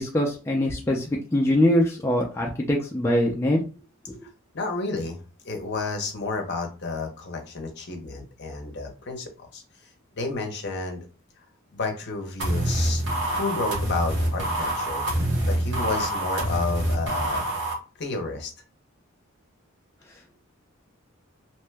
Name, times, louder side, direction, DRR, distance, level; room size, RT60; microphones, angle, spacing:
voice 1, 0.0-3.6, left 1 dB, 10° left, -2 dB, 0.4 m, -23 dB
voice 2, 4.5-9.6 10.2-11.0 11.7-17.5 18.0-18.5, left 3 dB, 55° left, 4 dB, 0.7 m, -31 dB
sound 1, 12.4-17.7, right 1 dB, 55° right, 1.0 m, -26 dB
2.8 x 2.1 x 3.3 m, 0.34 s
head